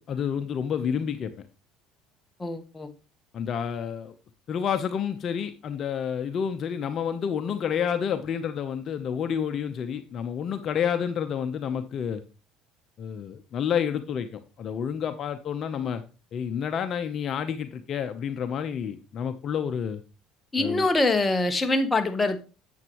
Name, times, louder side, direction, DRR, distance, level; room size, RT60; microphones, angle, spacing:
voice 1, 0.1-1.3 3.3-4.1 4.5-12.2 13.0-16.0 16.3-20.0 20.6-20.9, left 8 dB, 50° left, 8 dB, 0.8 m, -29 dB
voice 2, 2.4-2.9 20.5-22.4, left 2 dB, 20° left, 7 dB, 1.1 m, -24 dB
8.0 x 7.9 x 3.0 m, 0.33 s
supercardioid pair, 95°, 0 cm